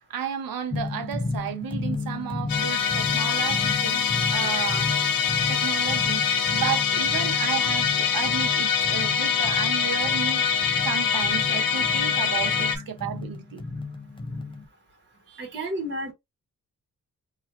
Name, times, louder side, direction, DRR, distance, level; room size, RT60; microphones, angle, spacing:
voice 1, 0.1-4.9 5.5-13.6 15.3-15.5, right 9 dB, 85° right, 0.8 m, -33 dB
sound 1, 0.7-14.7, left 3 dB, 15° left, 0.6 m, -34 dB
Musical instrument, 2.5-12.8, left 7 dB, 80° left, 0.6 m, -24 dB
voice 2, 15.4-16.1, right 1 dB, 35° right, 1.5 m, -31 dB
2.9 x 2.8 x 2.9 m
wide cardioid pair, 105°, 34 cm